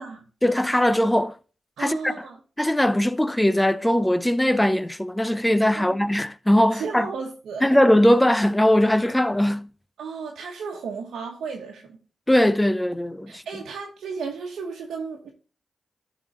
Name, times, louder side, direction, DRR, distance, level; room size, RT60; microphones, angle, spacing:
voice 1, 0.4-1.4 1.8-2.1 2.6-7.1 7.6-9.7 12.3-13.4, left 1 dB, 10° left, 0.6 m, -20 dB
voice 2, 1.8-2.4 5.7-6.0 6.7-7.7 10.0-12.0 13.3-15.3, right 5 dB, 85° right, 1.2 m, -34 dB
12.0 x 4.1 x 3.7 m
supercardioid pair, 50°, 0 cm